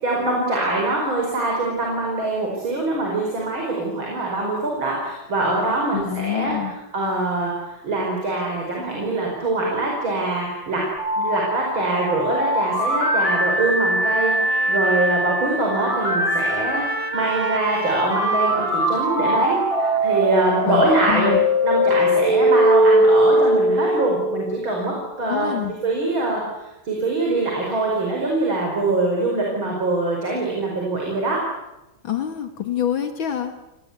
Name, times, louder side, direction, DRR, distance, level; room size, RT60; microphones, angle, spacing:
voice 1, 0.0-10.8 11.2-21.3 21.6-31.4, right 2 dB, 75° right, -1 dB, 6.1 m, -23 dB
voice 2, 5.9-6.7 20.7-21.4 25.3-25.7 32.0-33.5, left 10 dB, 75° left, 7 dB, 2.4 m, -26 dB
sound 1, 11.0-24.8, equal, 30° left, 6.1 m, -21 dB
Trumpet, 13.8-21.8, right 4 dB, 30° right, 1.6 m, -34 dB
29.5 x 19.5 x 8.2 m, 0.96 s
omnidirectional pair, 2.2 m